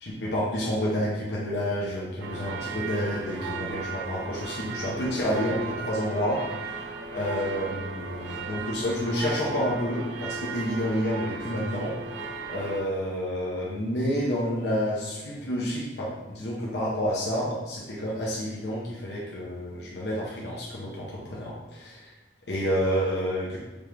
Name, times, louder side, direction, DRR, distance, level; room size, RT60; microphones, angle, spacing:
voice 1, 0.0-6.8 7.1-12.0 12.5-22.1 22.5-23.6, equal, 70° left, -5 dB, 0.7 m, -29 dB
sound 1, 2.2-12.8, right 4 dB, 80° right, 0.5 m, -36 dB
5.0 x 2.5 x 3.2 m, 1.1 s
head